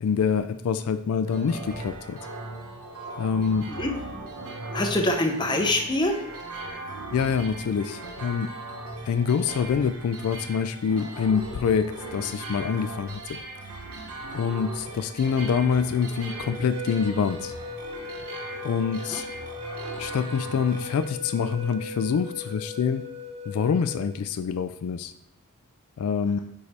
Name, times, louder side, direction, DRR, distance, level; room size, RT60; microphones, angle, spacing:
voice 1, 0.0-2.3 3.2-3.7 7.1-8.5 9.1-13.4 14.3-17.5 18.6-19.2 20.0-23.0 23.5-25.1 26.0-26.4, left 6 dB, 80° left, 11 dB, 0.3 m, -26 dB
sound 1, 1.2-21.0, right 2 dB, 85° right, 0.9 m, -39 dB
voice 2, 4.7-6.2 18.9-19.2, left 1 dB, 20° left, 3 dB, 0.6 m, -25 dB
sound 2, 16.4-24.2, left 3 dB, 25° right, 0.7 m, -38 dB
5.0 x 4.8 x 4.1 m, 0.83 s
head